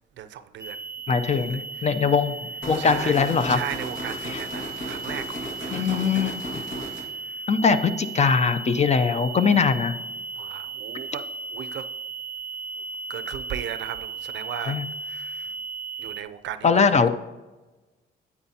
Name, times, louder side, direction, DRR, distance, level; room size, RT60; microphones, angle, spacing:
voice 1, 0.2-0.8 1.1-2.0 2.8-6.4 10.4-11.3 11.5-11.9 13.1-14.8 15.1-15.5 16.0-17.1, right 10 dB, 65° right, 0.5 m, -36 dB
sound 1, 0.6-16.2, right 4 dB, 15° right, 0.6 m, -36 dB
voice 2, 1.1-2.3 2.7-3.6 4.3-4.4 5.7-6.6 7.5-9.9 14.7-14.9 16.6-17.1, left 5 dB, 35° left, 0.6 m, -21 dB
sound 2, 2.6-7.0, equal, 75° left, 2.1 m, -35 dB
9.6 x 8.3 x 2.8 m
cardioid pair, 90°, 20 cm